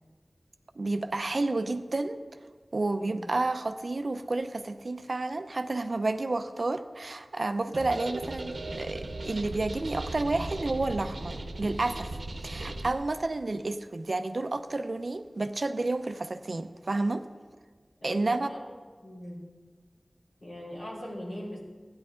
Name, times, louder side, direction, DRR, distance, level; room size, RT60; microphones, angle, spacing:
voice 1, 0.8-2.2 2.7-12.2 12.4-17.3 18.0-18.5, right 2 dB, 65° right, 8 dB, 0.6 m, -30 dB
sound 1, 7.7-12.9, right 2 dB, 85° right, 0.9 m, -37 dB
voice 2, 18.0-18.6 19.0-19.4 20.4-21.6, equal, 75° left, -6 dB, 3.8 m, -40 dB
15.5 x 10.5 x 3.8 m, 1.5 s
wide cardioid pair, 60°, 0 cm